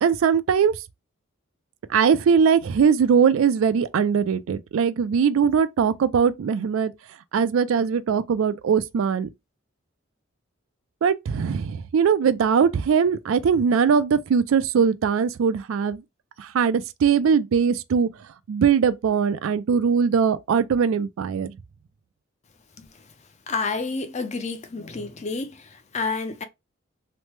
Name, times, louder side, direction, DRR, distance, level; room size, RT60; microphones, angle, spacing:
voice 1, 0.0-0.8 1.9-6.9 7.3-9.3 11.0-16.0 16.4-18.1 18.5-21.5, right 6 dB, 75° right, 0.3 m, -21 dB
voice 2, 23.5-26.4, left 4 dB, 35° left, 0.5 m, -29 dB
3.1 x 2.0 x 3.1 m
head